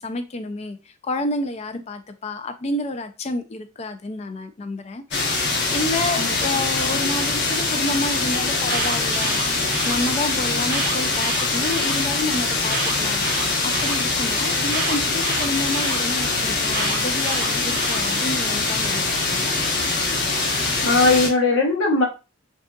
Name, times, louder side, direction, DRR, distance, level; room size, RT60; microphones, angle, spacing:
voice 1, 0.0-9.4 9.8-13.3 13.6-19.6, left 2 dB, 30° left, 0.4 m, -29 dB
sound 1, 5.1-21.3, left 3 dB, 55° left, 0.8 m, -23 dB
Alarm, 8.5-10.0 10.6-12.0 12.6-14.0 14.7-16.0 16.7-18.0, right 3 dB, 50° right, 0.8 m, -29 dB
sound 2, 9.1-9.4 10.5-10.8 11.5-11.8 13.4-13.7 14.3-14.6, right 1 dB, 5° right, 0.8 m, -35 dB
voice 2, 20.8-22.0, left 3 dB, 80° left, 1.0 m, -19 dB
3.6 x 2.7 x 2.2 m
head